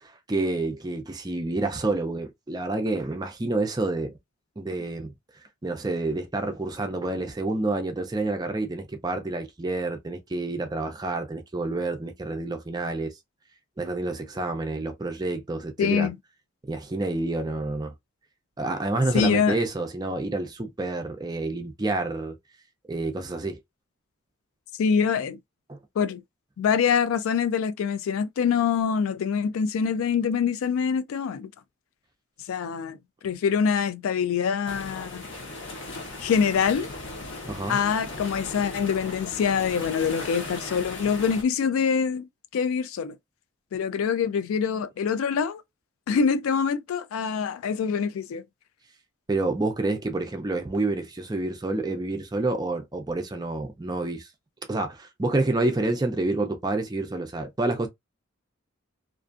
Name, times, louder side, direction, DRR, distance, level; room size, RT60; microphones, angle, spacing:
voice 1, 0.0-4.1 4.6-5.1 5.6-13.1 13.8-16.1 16.6-17.9 18.6-22.4 22.9-23.6 25.7-25.8 37.5-37.8 49.3-54.3 54.7-57.9, right 2 dB, 20° right, 0.4 m, -28 dB
voice 2, 15.8-16.1 19.1-19.6 24.8-25.4 26.0-26.2 26.6-31.5 32.5-33.0 33.2-35.3 36.2-36.9 37.7-43.2 43.7-45.6 46.1-48.4, left 6 dB, 85° left, 0.3 m, -25 dB
sound 1, 34.7-41.4, left 2 dB, 60° left, 0.9 m, -37 dB
2.5 x 2.4 x 2.4 m
head